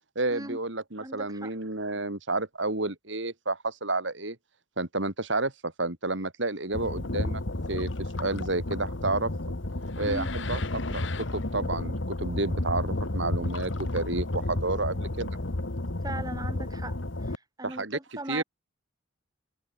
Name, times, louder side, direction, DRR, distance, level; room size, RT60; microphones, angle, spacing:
voice 1, 0.1-4.4 4.8-7.4 7.7-7.9 8.2-9.3 10.0-15.4 17.6-18.0 18.3-18.4, right 2 dB, 60° right, 2.7 m, -30 dB
voice 2, 1.0-1.5 10.0-10.3 16.0-17.0 17.2-18.4, right 2 dB, 20° right, 1.9 m, -38 dB
sound 1, 6.7-17.4, left 2 dB, 60° left, 1.5 m, -32 dB
head